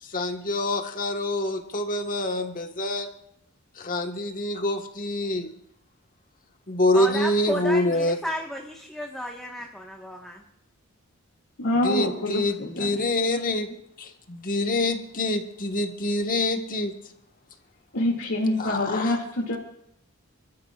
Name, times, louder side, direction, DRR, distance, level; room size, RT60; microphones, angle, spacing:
voice 1, 0.0-3.1 3.8-5.5 6.7-8.2 11.8-13.7 14.0-16.9 18.6-19.2, left 1 dB, 40° left, 5 dB, 1.5 m, -26 dB
voice 2, 6.9-10.4, equal, 5° left, -1 dB, 1.4 m, -33 dB
voice 3, 11.6-13.0 17.9-19.6, left 1 dB, 70° left, -2 dB, 2.4 m, -26 dB
29.5 x 13.0 x 2.5 m, 0.76 s
head